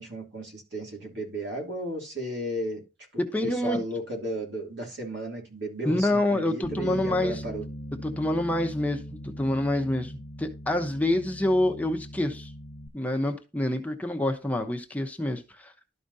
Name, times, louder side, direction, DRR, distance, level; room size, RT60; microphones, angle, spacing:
voice 1, 0.0-2.8 3.1-7.6, right 1 dB, 85° right, 2.8 m, -34 dB
voice 2, 3.2-3.8 5.9-7.4 8.0-12.5 12.9-15.7, left 1 dB, 10° left, 0.9 m, -27 dB
Bass guitar, 6.6-12.9, equal, 75° left, 0.7 m, -40 dB
12.5 x 5.0 x 2.7 m
head